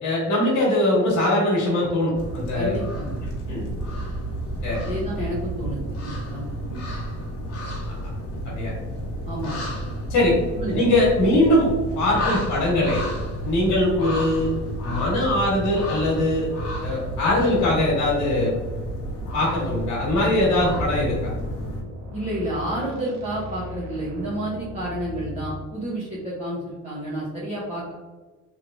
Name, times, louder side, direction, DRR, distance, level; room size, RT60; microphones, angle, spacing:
voice 1, 0.0-2.8 3.5-3.6 4.6-4.8 8.5-8.7 10.1-10.3 10.7-11.7 11.9-13.0 13.4-14.5 14.8-16.5 16.8-18.5 19.3-21.3, left 1 dB, 70° left, -4 dB, 1.3 m, -21 dB
sound 1, 2.1-21.8, equal, 50° left, 1.0 m, -31 dB
voice 2, 2.5-3.2 4.8-5.8 6.0-6.8 9.3-9.6 10.5-10.8 22.1-28.0, right 1 dB, 25° right, -8 dB, 0.9 m, -30 dB
sound 2, 20.6-25.7, left 2 dB, 70° right, 1.0 m, -37 dB
3.2 x 3.1 x 2.5 m, 1.3 s
cardioid pair, 145°, 30 cm